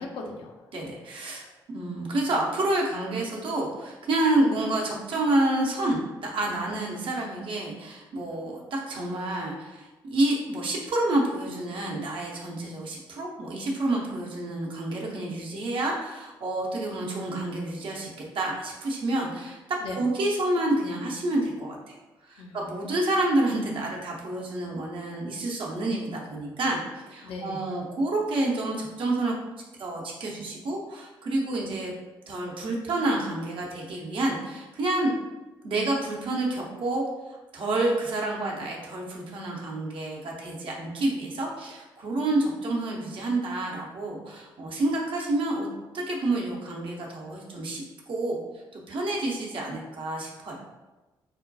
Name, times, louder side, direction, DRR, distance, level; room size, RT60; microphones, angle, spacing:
voice 1, 0.0-1.0 19.8-20.0 22.4-22.6 27.2-27.7, left 3 dB, 55° left, 0 dB, 0.6 m, -39 dB
voice 2, 0.7-1.4 1.7-22.0 22.3-26.8 27.1-29.3 29.8-31.9 32.3-35.1 35.6-37.0 37.5-45.7 45.9-48.4 48.7-50.6, right 2 dB, 50° right, -2 dB, 0.8 m, -28 dB
4.3 x 2.2 x 2.6 m, 1.1 s
figure-of-eight pair, 45°, 11 cm